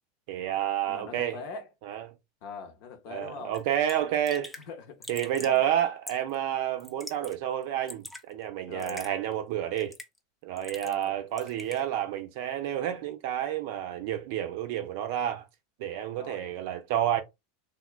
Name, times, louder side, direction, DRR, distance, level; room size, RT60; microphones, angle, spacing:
voice 1, 0.3-1.4 1.9-2.0 3.1-4.5 5.1-9.9 10.4-15.5 15.8-17.2, right 11 dB, 50° right, 0.5 m, -30 dB
voice 2, 0.9-1.7 2.4-3.6 4.6-5.1 5.4-5.6 8.7-9.1 10.8-11.2 16.1-16.5, left 5 dB, 50° left, 0.7 m, -42 dB
Raindrop / Drip, 3.5-3.6 3.9-4.0 4.3-4.6 5.0-5.6 6.1-6.3 6.8-7.3 7.6-8.2 8.8-9.1 9.8-10.2 10.6-11.1 11.4-11.8, left 1 dB, 5° left, 0.6 m, -43 dB
3.5 x 2.2 x 2.2 m
figure-of-eight pair, 85°, 0 cm